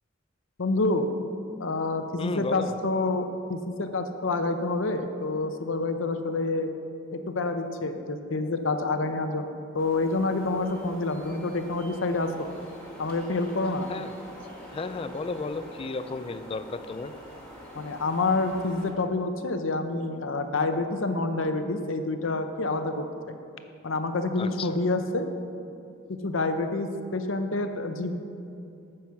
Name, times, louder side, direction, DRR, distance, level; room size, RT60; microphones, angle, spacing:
voice 1, 0.6-1.1 1.6-6.7 7.1-12.5 13.0-13.9 17.7-23.3 23.8-25.3 26.2-28.2, left 2 dB, 70° left, 7 dB, 0.7 m, -28 dB
voice 2, 2.2-2.7 13.9-14.1 14.7-17.1 24.4-24.7, left 3 dB, 25° left, 12 dB, 0.4 m, -33 dB
sound 1, 9.8-18.9, equal, 5° left, 1.8 m, -45 dB
9.4 x 7.7 x 5.8 m, 2.6 s
head